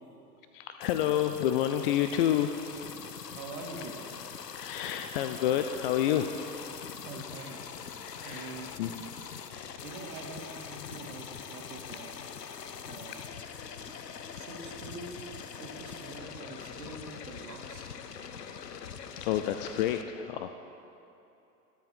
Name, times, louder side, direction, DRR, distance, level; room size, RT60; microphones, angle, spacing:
voice 1, 0.5-3.2 4.5-7.1 8.0-8.9 9.3-9.8 11.9-12.0 13.0-13.2 13.8-14.2 16.4-16.5 18.6-18.7 19.1-20.6, left 10 dB, 35° left, 8 dB, 0.5 m, -30 dB
sound 1, 0.8-20.0, left 7 dB, 80° left, 0.8 m, -43 dB
voice 2, 3.3-4.0 7.0-7.6 8.2-8.7 9.8-12.1 12.8-13.2 14.4-15.3 15.6-17.9, right 3 dB, 60° right, 1 dB, 2.3 m, -44 dB
21.5 x 7.7 x 4.3 m, 2.9 s
figure-of-eight pair, 90°, 48 cm